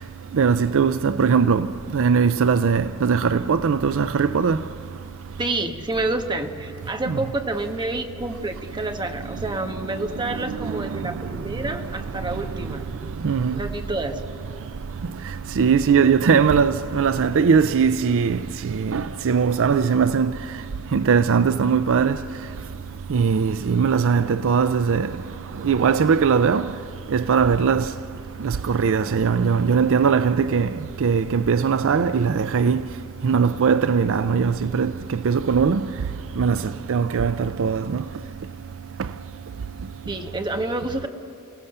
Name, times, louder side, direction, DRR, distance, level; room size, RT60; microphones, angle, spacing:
voice 1, 0.3-1.7 1.9-4.6 7.1-7.2 10.7-10.8 13.2-13.6 15.6-18.4 18.6-20.3 20.9-22.2 23.1-25.1 25.6-26.7 27.1-27.9 28.4-30.7 31.0-32.8 33.2-34.9 35.2-35.9 36.4-36.6 36.9-38.0, right 6 dB, 65° right, 0.5 m, -20 dB
voice 2, 5.4-12.8 13.5-14.2 40.1-41.1, right 2 dB, 20° right, 1.3 m, -28 dB
29.5 x 17.5 x 6.7 m
head